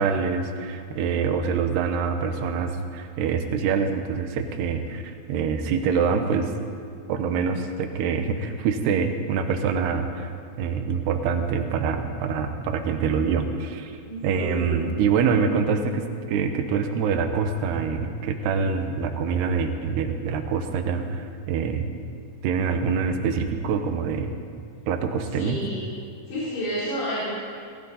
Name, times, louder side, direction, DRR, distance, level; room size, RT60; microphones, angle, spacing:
voice 1, 0.0-6.5 7.1-10.3 10.6-21.9 22.4-24.3 24.9-25.6, right 6 dB, 85° right, 6 dB, 3.0 m, -25 dB
voice 2, 14.1-15.0 25.4-25.8 26.3-27.2, equal, 90° left, -11 dB, 5.8 m, -30 dB
18.5 x 16.0 x 4.1 m, 2.2 s
omnidirectional pair, 4.6 m